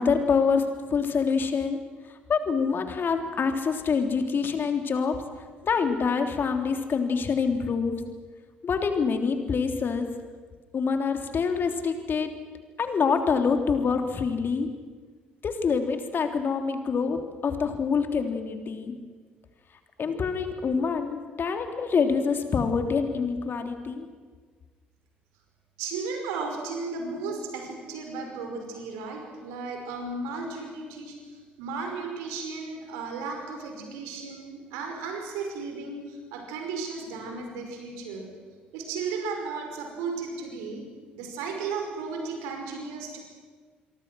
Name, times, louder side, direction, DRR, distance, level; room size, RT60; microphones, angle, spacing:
voice 1, 0.0-5.2 5.6-8.0 8.6-10.1 10.7-12.3 12.8-14.7 15.4-18.9 20.0-24.1, left 5 dB, 45° left, 5 dB, 3.3 m, -26 dB
voice 2, 25.8-38.3 38.7-40.9 41.1-43.2, right 4 dB, 70° right, 3 dB, 5.3 m, -35 dB
27.0 x 23.0 x 6.3 m, 1.5 s
figure-of-eight pair, 50°, 5 cm